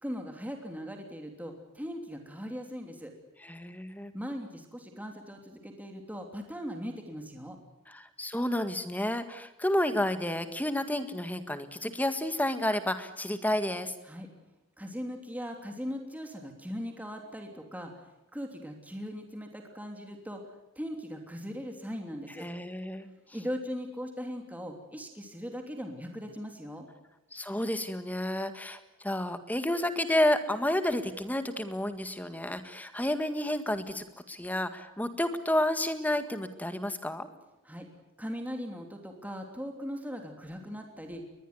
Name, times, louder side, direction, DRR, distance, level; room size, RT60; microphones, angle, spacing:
voice 1, 0.0-3.1 4.1-7.6 14.1-14.3 14.8-17.9 18.3-20.4 20.8-22.4 23.3-26.9 37.6-37.9 38.2-41.2, equal, 5° right, 3 dB, 3.0 m, -39 dB
voice 2, 3.4-4.1 7.9-13.9 22.4-23.1 27.3-37.3, left 1 dB, 10° left, 9 dB, 1.8 m, -30 dB
22.0 x 21.0 x 9.6 m, 0.96 s
head